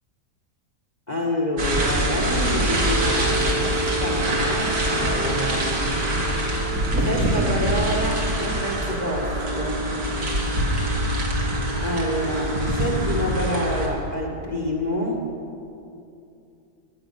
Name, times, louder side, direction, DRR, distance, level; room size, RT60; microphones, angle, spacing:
voice 1, 1.1-5.7 7.0-9.9 11.8-15.3, equal, 30° left, -1 dB, 1.3 m, -27 dB
sound 1, 1.6-13.9, right 1 dB, 70° right, 2.2 m, -24 dB
15.0 x 8.4 x 5.5 m, 2.6 s
omnidirectional pair, 1.6 m